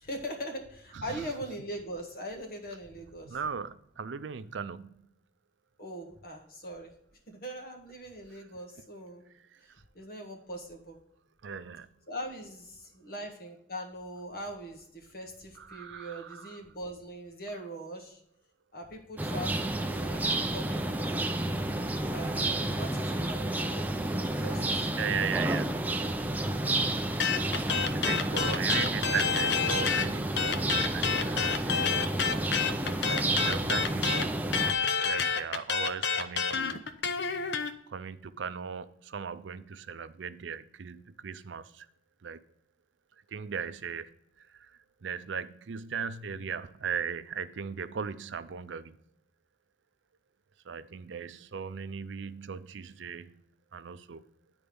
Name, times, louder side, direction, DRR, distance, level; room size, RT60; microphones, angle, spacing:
voice 1, 0.0-3.4 5.8-6.9 7.3-9.2 9.6-11.0 12.1-18.2 18.7-21.5 22.1-24.9, equal, 50° left, 1.7 m, -41 dB
voice 2, 3.2-4.9 11.4-11.9 15.7-16.5 24.4-24.5 24.9-25.8 27.9-31.9 33.0-34.4 35.0-36.8 37.5-41.9 42.2-42.4 43.3-44.1 44.5-44.7 45.0-48.9 50.7-53.4 53.7-54.2, right 6 dB, 80° right, 0.5 m, -38 dB
sound 1, 19.2-34.7, right 1 dB, 10° right, 0.5 m, -30 dB
sound 2, 27.2-30.1 30.4-37.7, left 6 dB, 65° left, 0.7 m, -29 dB
10.5 x 4.4 x 5.2 m
head